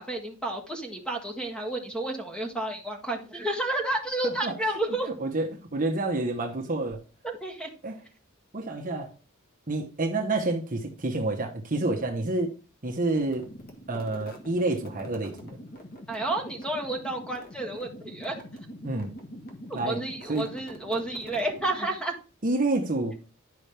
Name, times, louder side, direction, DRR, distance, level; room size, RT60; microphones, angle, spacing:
voice 1, 0.0-5.1 7.2-7.7 16.1-18.4 19.7-22.1, right 2 dB, 5° left, 2 dB, 1.6 m, -31 dB
voice 2, 4.2-4.5 5.2-7.0 7.8-8.0 8.5-9.1 9.7-12.5 12.8-13.5 13.9-15.6 18.8-19.1 19.7-20.0 20.3-20.5 22.4-23.2, right 2 dB, 40° right, 2 dB, 1.0 m, -28 dB
sound 1, 13.2-22.2, equal, 45° left, 1.6 m, -44 dB
11.0 x 5.5 x 3.4 m, 0.35 s
head